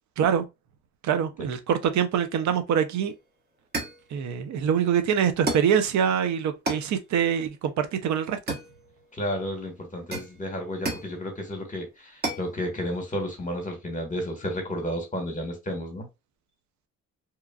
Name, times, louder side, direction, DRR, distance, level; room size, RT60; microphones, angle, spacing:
voice 1, 1.0-3.1 4.1-8.4, right 8 dB, 70° right, 0.6 m, -24 dB
sound 1, 3.0-3.2 3.7-4.1 5.5-5.8 6.7-6.9 8.5-9.1 10.1-11.2 12.2-12.5, right 2 dB, 30° right, 1.0 m, -32 dB
voice 2, 9.1-16.1, equal, 25° left, 1.1 m, -32 dB
2.9 x 2.4 x 2.3 m
cardioid pair, 90°, 30 cm